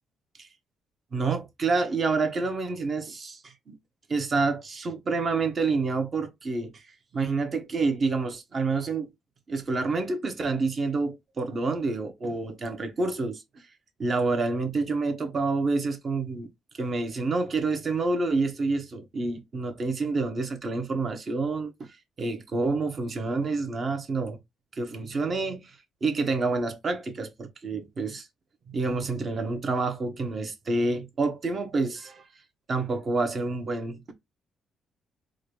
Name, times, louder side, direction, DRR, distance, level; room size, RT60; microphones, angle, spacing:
voice 1, 1.1-3.8 4.1-6.8 7.1-9.1 9.5-13.4 14.0-16.5 16.7-21.9 22.2-24.4 24.7-28.3 28.7-32.3 32.7-34.1, right 3 dB, 45° right, 1.1 m, -28 dB
3.9 x 2.5 x 3.2 m
cardioid pair, 90°, 0 cm